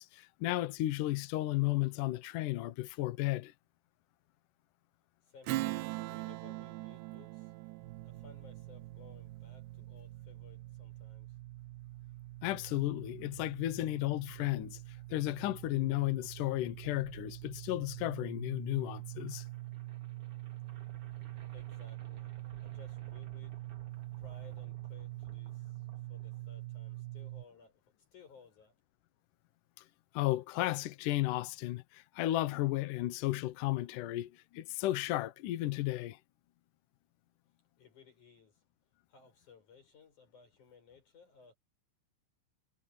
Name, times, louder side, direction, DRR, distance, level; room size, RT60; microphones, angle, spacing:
voice 1, 0.0-3.5 12.4-14.8 15.1-19.5 30.1-36.2, left 16 dB, 80° left, 1.8 m, -34 dB
voice 2, 5.2-7.5 8.0-11.4 21.5-22.3 22.6-23.6 24.2-27.8 28.1-28.7 37.8-38.6 39.1-41.5, left 5 dB, 45° left, 8.0 m, -59 dB
Strum, 5.5-10.4, right 19 dB, 80° right, 3.0 m, -41 dB
sound 1, 7.8-27.4, right 18 dB, 65° right, 2.4 m, -45 dB
sound 2, 18.8-26.8, right 3 dB, 40° right, 2.7 m, -58 dB
omnidirectional pair, 5.0 m